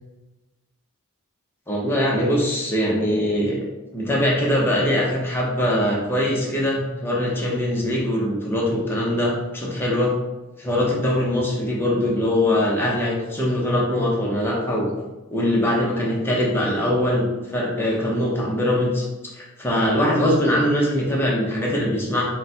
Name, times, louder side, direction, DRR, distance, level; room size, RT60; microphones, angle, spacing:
voice 1, 1.7-3.6 3.9-10.1 10.6-14.9 15.3-17.3 17.5-19.0 19.4-22.3, left 1 dB, 10° left, -4 dB, 0.8 m, -22 dB
4.0 x 2.2 x 4.2 m, 1.1 s
head